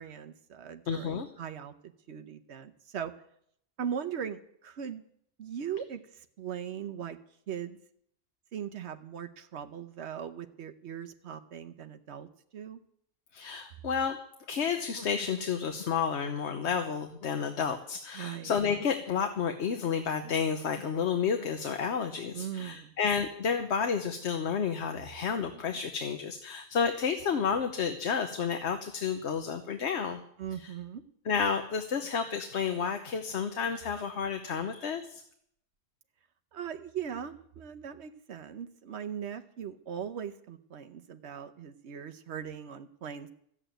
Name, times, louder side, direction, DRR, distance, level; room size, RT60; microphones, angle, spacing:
voice 1, 0.0-1.7 2.1-3.1 3.8-5.0 5.4-7.2 7.5-7.8 8.5-12.8 18.1-18.5 22.3-22.9 30.4-31.0 36.5-43.3, right 8 dB, 90° right, 9 dB, 1.1 m, -39 dB
voice 2, 0.9-1.3 13.3-14.2 14.5-30.2 30.5-30.7 31.2-35.2, left 6 dB, 90° left, 6 dB, 1.2 m, -31 dB
13.5 x 8.0 x 9.0 m, 0.70 s
omnidirectional pair, 1.1 m